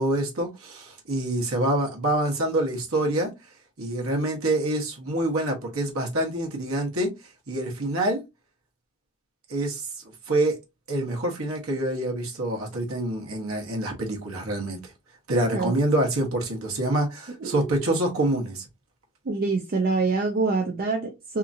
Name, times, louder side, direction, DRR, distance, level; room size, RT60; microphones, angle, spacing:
voice 1, 0.0-3.3 3.8-7.1 7.5-8.2 9.5-10.6 10.9-14.9 15.3-18.6, right 1 dB, 70° right, 1.1 m, -26 dB
voice 2, 17.4-17.8 19.3-21.4, right 3 dB, 45° right, 0.4 m, -25 dB
2.8 x 2.5 x 2.5 m
head